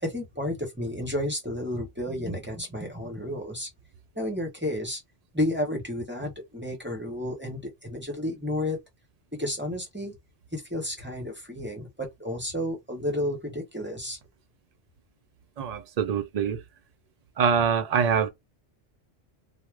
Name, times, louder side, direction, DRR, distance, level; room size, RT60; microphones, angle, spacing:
voice 1, 0.0-3.7 4.2-5.0 5.3-8.8 9.3-10.1 10.5-14.2, left 1 dB, 10° right, 0.6 m, -31 dB
voice 2, 15.6-16.6 17.4-18.3, right 7 dB, 55° right, 0.4 m, -24 dB
2.3 x 2.0 x 3.1 m
omnidirectional pair, 1.1 m